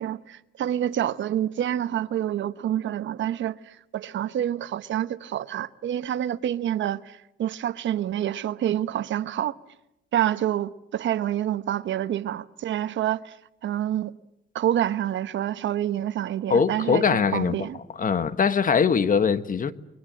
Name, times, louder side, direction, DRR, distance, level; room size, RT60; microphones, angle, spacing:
voice 1, 0.0-9.5 10.1-13.4 13.6-14.2 14.5-17.8, right 11 dB, 70° right, 1.1 m, -27 dB
voice 2, 16.5-17.5 18.0-19.7, left 6 dB, 40° left, 1.5 m, -22 dB
29.0 x 23.0 x 7.8 m
cardioid pair, 90°, 20 cm